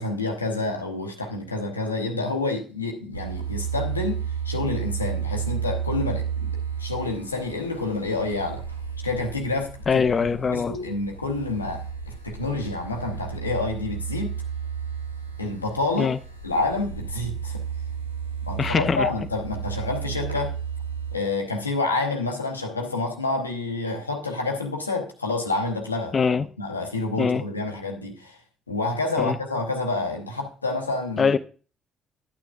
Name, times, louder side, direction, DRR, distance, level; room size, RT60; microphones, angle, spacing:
voice 1, 0.0-8.6 9.0-10.0 10.5-14.4 15.4-16.1 16.4-17.7 18.4-20.6 21.1-28.4 28.7-31.3, left 3 dB, 85° left, 0.8 m, -28 dB
sound 1, 3.1-21.2, right 7 dB, 90° right, 0.6 m, -32 dB
voice 2, 9.9-10.8 16.0-16.2 18.6-19.1 26.1-26.4 27.2-27.4 29.2-29.3 31.2-31.4, left 5 dB, 40° left, 0.5 m, -22 dB
12.0 x 8.8 x 2.3 m
figure-of-eight pair, 45°, 0 cm